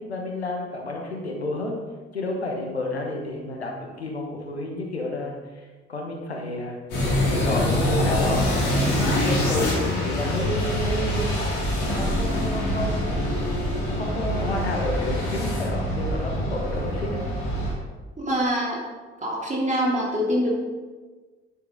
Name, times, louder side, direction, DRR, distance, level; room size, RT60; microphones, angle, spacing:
voice 1, 0.0-1.8 2.1-6.8 7.3-11.5 11.9-13.0 13.9-17.2, left 2 dB, 85° left, 1 dB, 1.2 m, -30 dB
sound 1, 6.9-17.7, left 1 dB, 70° left, 3.0 m, -25 dB
voice 2, 18.2-18.8 19.2-20.5, equal, 25° right, -4 dB, 3.2 m, -25 dB
10.0 x 7.9 x 3.9 m, 1.3 s
figure-of-eight pair, 45°, 31 cm